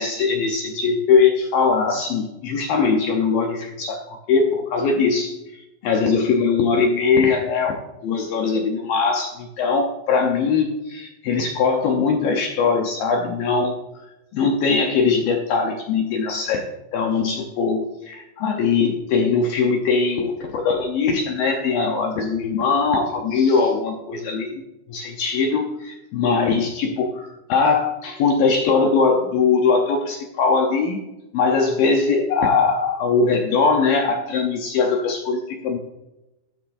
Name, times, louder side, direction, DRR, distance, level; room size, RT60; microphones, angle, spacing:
voice 1, 0.0-14.0 14.3-24.5 24.9-31.0 31.3-35.8, left 4 dB, 75° left, 2 dB, 2.2 m, -21 dB
12.5 x 9.1 x 2.6 m, 0.96 s
omnidirectional pair, 5.0 m